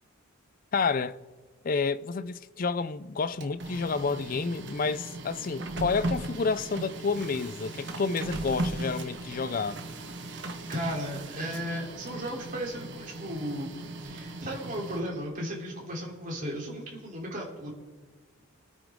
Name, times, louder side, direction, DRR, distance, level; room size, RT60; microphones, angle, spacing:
voice 1, 0.7-1.2 1.6-9.8, left 4 dB, 45° left, 0.4 m, -30 dB
Printer, 3.2-15.3, right 2 dB, 60° right, 1.3 m, -38 dB
voice 2, 10.7-13.7 14.0-17.7, equal, 40° right, 3.4 m, -35 dB
24.0 x 8.8 x 3.7 m
head